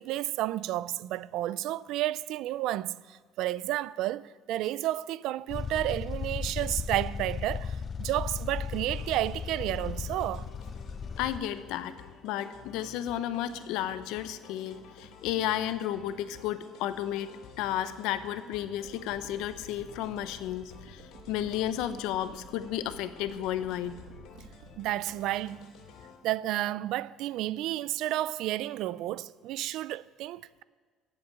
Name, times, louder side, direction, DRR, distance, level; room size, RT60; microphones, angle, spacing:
voice 1, 0.0-10.5 24.8-25.7 26.2-30.6, right 14 dB, 70° right, 0.4 m, -31 dB
sound 1, 5.5-11.4, left 6 dB, 30° left, 0.4 m, -36 dB
sound 2, 8.7-26.2, left 5 dB, 65° left, 2.5 m, -52 dB
voice 2, 11.2-12.0 12.2-24.0, left 11 dB, 80° left, 0.8 m, -33 dB
sound 3, 18.7-24.7, right 6 dB, 85° right, 1.5 m, -51 dB
15.5 x 7.8 x 8.7 m
cardioid pair, 145°, 0 cm